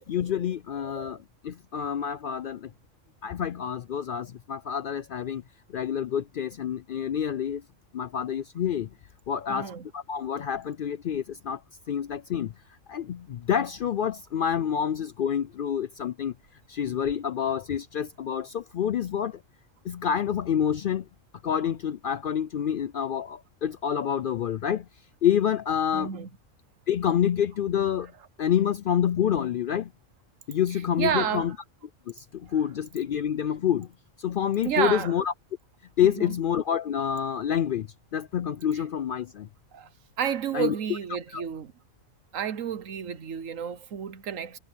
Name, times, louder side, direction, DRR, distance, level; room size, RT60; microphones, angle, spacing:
voice 1, 0.1-1.2 1.4-2.7 3.2-5.4 5.7-7.6 7.9-8.9 9.3-11.6 11.9-12.5 12.9-16.3 16.7-19.4 19.8-21.1 21.4-24.9 25.2-26.1 26.9-28.1 28.4-29.9 30.5-31.5 32.1-33.9 34.2-35.3 36.0-39.5 40.5-40.7 41.3-41.4, left 9 dB, 65° left, 0.5 m, -27 dB
voice 2, 0.8-1.2 9.5-9.9 25.9-26.3 30.7-31.5 32.5-32.6 34.6-35.1 36.0-36.3 38.7-38.8 39.7-39.9 40.2-41.7 42.3-44.6, right 8 dB, 85° right, 1.4 m, -31 dB
omnidirectional pair, 1.3 m